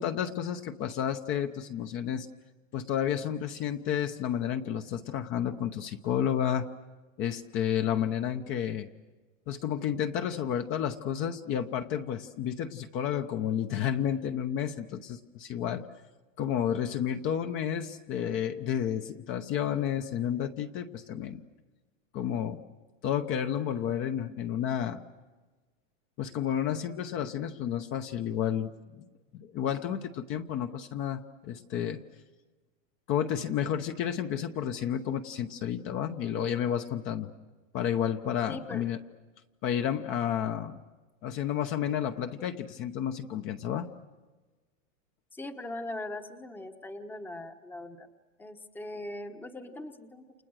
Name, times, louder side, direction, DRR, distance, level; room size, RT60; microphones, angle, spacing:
voice 1, 0.0-2.3 2.7-6.7 7.2-8.9 9.5-15.9 16.4-21.4 22.1-22.6 23.0-25.0 26.2-29.0 29.3-32.0 33.1-37.3 37.7-39.0 39.6-40.8 41.2-43.9, left 9 dB, 30° left, 7 dB, 1.0 m, -31 dB
voice 2, 38.5-38.9 45.3-48.1 48.4-50.2, left 1 dB, 5° left, 8 dB, 1.1 m, -40 dB
30.0 x 27.5 x 6.4 m, 1.3 s
supercardioid pair, 145°, 39 cm